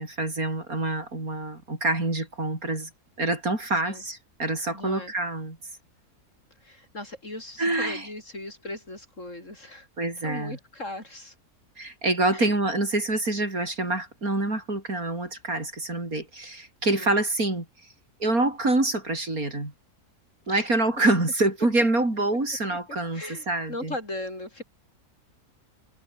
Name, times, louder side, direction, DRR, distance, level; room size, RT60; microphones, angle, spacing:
voice 1, 0.0-2.9 3.2-5.6 7.6-8.1 10.0-10.6 11.8-17.7 18.2-19.7 20.5-23.9, right 2 dB, 60° right, 6.3 m, -26 dB
voice 2, 4.7-5.1 6.6-9.9 10.2-11.3 12.3-12.5 16.8-17.2 20.5-20.8 22.7-22.8 23.1-24.6, left 1 dB, 50° left, 6.8 m, -38 dB
omnidirectional pair, 1.7 m